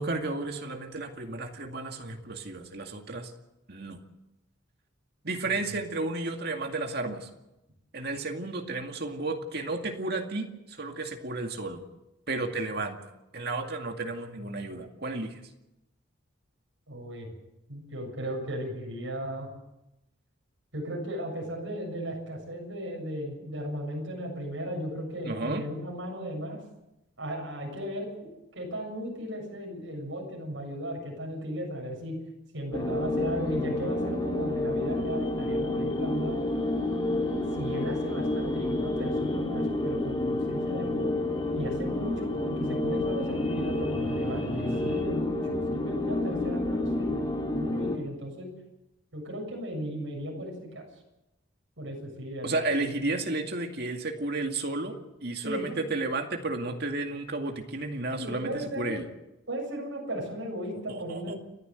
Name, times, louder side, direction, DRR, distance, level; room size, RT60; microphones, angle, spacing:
voice 1, 0.0-3.3 3.7-4.0 5.2-7.3 7.9-11.8 12.3-13.0 13.3-15.4 25.2-25.6 52.4-59.1 60.9-61.3, right 2 dB, 50° right, 4 dB, 2.2 m, -32 dB
voice 2, 16.9-17.3 17.7-19.5 20.7-26.6 27.2-28.1 28.5-32.2 32.5-36.5 37.5-41.1 41.5-47.2 47.5-48.5 49.1-50.9 51.8-52.8 55.4-55.8 58.2-59.0 59.5-61.4, equal, 70° right, 0 dB, 7.2 m, -36 dB
sound 1, 32.7-48.0, left 2 dB, 20° left, 2.2 m, -29 dB
sound 2, 35.0-45.0, left 3 dB, 80° left, 3.6 m, -44 dB
30.0 x 11.0 x 7.9 m, 0.92 s
head